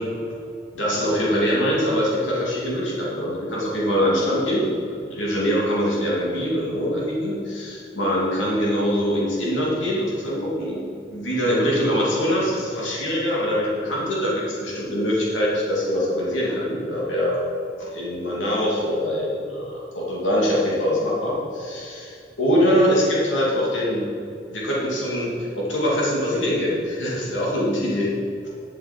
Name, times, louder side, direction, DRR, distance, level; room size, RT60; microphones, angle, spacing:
voice 1, 0.7-10.8 11.1-17.4 17.8-24.1 24.5-28.1, equal, 80° left, -5 dB, 2.6 m, -23 dB
11.5 x 7.4 x 5.2 m, 2.6 s
head